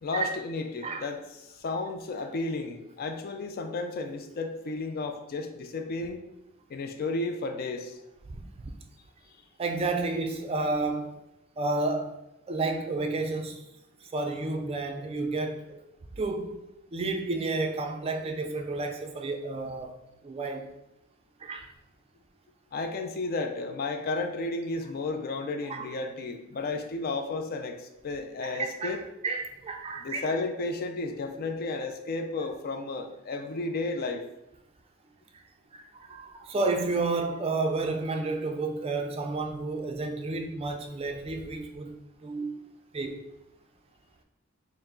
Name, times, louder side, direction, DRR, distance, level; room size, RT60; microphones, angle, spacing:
voice 1, 0.0-6.2 6.7-8.0 22.7-29.0 30.0-34.4, left 3 dB, 45° left, 0.4 m, -33 dB
voice 2, 8.3-8.7 9.6-11.1 11.6-12.1 12.5-13.6 14.1-15.8 16.1-16.6 16.9-20.0 20.2-20.7 21.4-21.7 25.7-25.9 28.4-29.0 29.2-30.3 35.7-41.9 42.2-42.5 42.9-43.2, right 3 dB, 30° right, 0.3 m, -31 dB
4.6 x 2.0 x 3.7 m
head